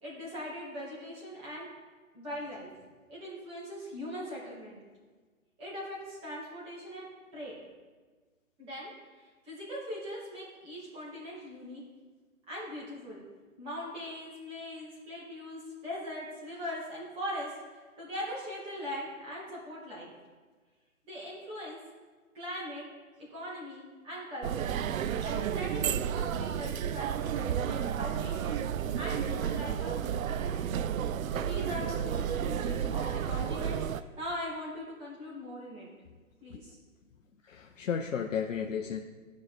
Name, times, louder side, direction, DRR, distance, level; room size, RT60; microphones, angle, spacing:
voice 1, 0.0-1.7 2.1-2.7 3.1-4.8 5.6-7.5 8.6-11.8 12.5-13.2 13.6-20.1 21.1-21.8 22.3-22.8 23.2-24.7 25.2-35.9 36.4-36.8, equal, 15° right, -6 dB, 2.2 m, -41 dB
sound 1, 24.4-34.0, right 9 dB, 70° right, 0.5 m, -32 dB
voice 2, 37.4-39.0, left 7 dB, 60° left, 4 dB, 0.7 m, -33 dB
13.5 x 5.3 x 3.3 m, 1.4 s
hypercardioid pair, 160°, 42 cm